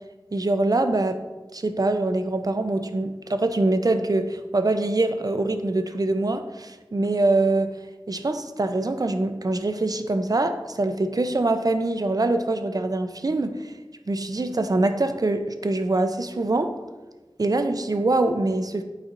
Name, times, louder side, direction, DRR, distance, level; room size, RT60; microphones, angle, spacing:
voice 1, 0.3-1.2 1.5-7.7 8.1-13.7 14.1-16.7 17.4-18.8, right 2 dB, 45° right, 8 dB, 0.5 m, -24 dB
8.8 x 4.2 x 2.6 m, 1.2 s
wide cardioid pair, 45°, 8 cm